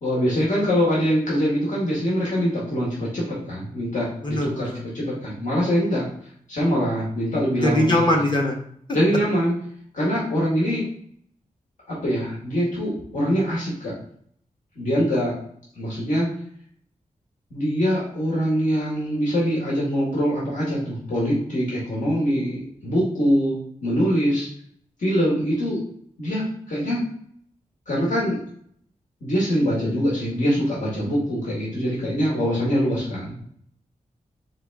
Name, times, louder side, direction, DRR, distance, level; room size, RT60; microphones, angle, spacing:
voice 1, 0.0-6.1 6.5-8.1 8.9-9.5 9.9-10.9 11.9-13.9 14.8-15.3 15.8-16.3 17.5-23.6 23.8-24.5 25.0-25.8 26.2-27.0 27.9-28.4 29.2-33.4, equal, 65° left, -6 dB, 1.8 m, -23 dB
voice 2, 4.2-4.8 7.6-8.6, left 1 dB, 35° left, 0 dB, 1.1 m, -21 dB
4.0 x 3.5 x 3.5 m, 0.64 s
wide cardioid pair, 105°, 14 cm